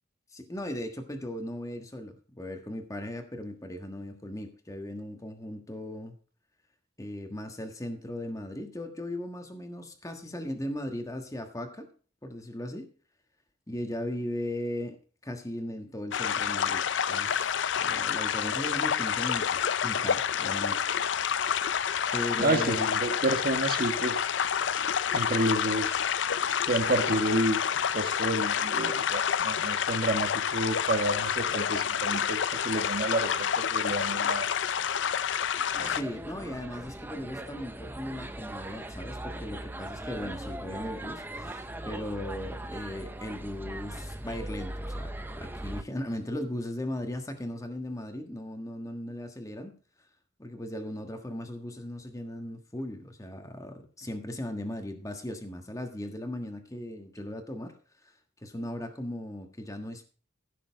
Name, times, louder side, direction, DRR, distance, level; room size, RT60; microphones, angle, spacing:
voice 1, 0.3-6.1 7.0-11.9 12.2-12.9 13.7-15.0 15.2-16.8 17.1-20.8 22.1-23.0 35.8-49.7 50.4-57.7 58.0-58.1 58.4-60.0, left 1 dB, 15° left, 5 dB, 1.4 m, -37 dB
sound 1, 16.1-36.0, left 8 dB, 70° left, 0.5 m, -28 dB
voice 2, 22.4-24.2 25.1-25.9 26.6-34.5, right 1 dB, 50° right, 6 dB, 1.7 m, -30 dB
sound 2, 35.7-45.8, right 1 dB, 10° right, 0.7 m, -39 dB
15.5 x 6.8 x 4.6 m, 0.39 s
head